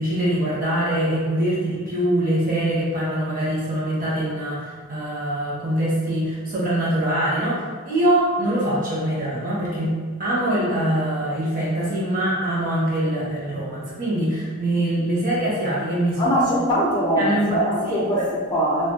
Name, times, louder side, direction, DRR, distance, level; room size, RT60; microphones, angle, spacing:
voice 1, 0.0-9.9 10.2-16.3 17.2-17.6 17.8-18.2, right 1 dB, 45° right, -7 dB, 0.9 m, -23 dB
voice 2, 16.2-18.9, equal, 20° left, -5 dB, 0.4 m, -22 dB
2.5 x 2.5 x 2.6 m, 1.5 s
head